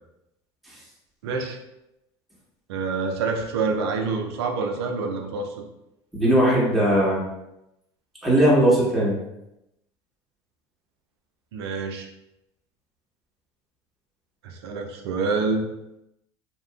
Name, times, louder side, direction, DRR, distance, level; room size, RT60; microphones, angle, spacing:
voice 1, 1.2-1.6 2.7-5.6 11.5-12.1 14.4-15.7, right 4 dB, 80° right, 3 dB, 0.4 m, -27 dB
voice 2, 6.1-7.2 8.2-9.2, right 1 dB, ahead, -6 dB, 1.0 m, -19 dB
2.8 x 2.3 x 2.3 m, 0.87 s
hypercardioid pair, 75°, 13 cm